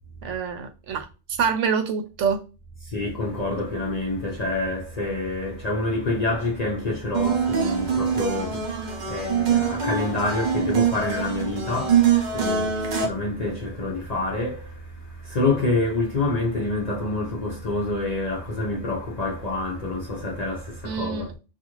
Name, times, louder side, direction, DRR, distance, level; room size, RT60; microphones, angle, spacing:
voice 1, 0.2-1.1 1.4-2.4 20.8-21.3, right 6 dB, 75° right, 0.9 m, -26 dB
voice 2, 2.8-21.3, left 2 dB, 45° left, 0.5 m, -27 dB
sound 1, 7.1-13.1, right 7 dB, 45° right, 0.6 m, -24 dB
2.5 x 2.4 x 2.9 m
omnidirectional pair, 1.3 m